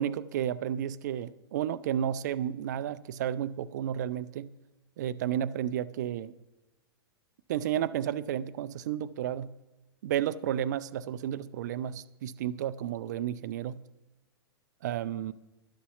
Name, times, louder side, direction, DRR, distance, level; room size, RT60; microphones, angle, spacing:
voice 1, 0.0-4.5 5.0-6.3 7.5-9.5 10.0-13.8 14.8-15.3, right 10 dB, 45° right, 0.4 m, -32 dB
11.5 x 6.9 x 5.6 m
figure-of-eight pair, 105°, 13 cm